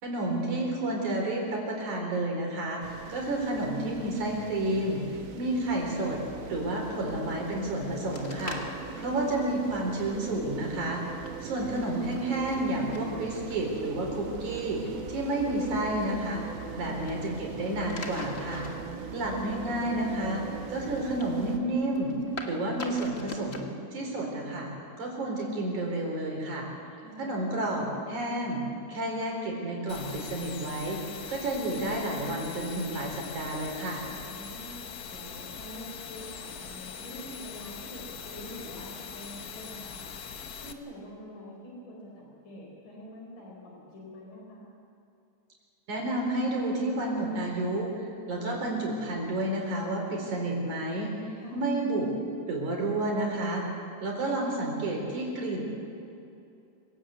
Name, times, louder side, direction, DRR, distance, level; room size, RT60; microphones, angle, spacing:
voice 1, 0.0-5.0 5.4-6.2 6.5-8.6 9.0-11.0 11.4-14.8 15.1-16.4 16.8-18.7 19.1-20.4 20.7-22.1 22.5-24.7 25.0-26.7 27.2-28.6 28.9-31.0 31.3-34.0 45.9-47.9 48.3-51.1 51.5-52.1 52.5-53.7 54.0-55.6, right 1 dB, 70° right, 0 dB, 5.8 m, -30 dB
sound 1, 2.8-21.6, right 5 dB, 50° right, 1.8 m, -41 dB
sound 2, 8.1-23.7, left 3 dB, 30° left, 1.2 m, -46 dB
voice 2, 9.0-9.6 16.7-17.1 19.2-19.7 27.0-27.4 34.2-40.1 40.6-44.7 51.3-51.7, equal, 90° left, -2 dB, 6.0 m, -46 dB
sound 3, 29.9-40.7, left 6 dB, 60° left, 1.0 m, -42 dB
25.5 x 17.0 x 8.4 m, 2.7 s
omnidirectional pair, 3.5 m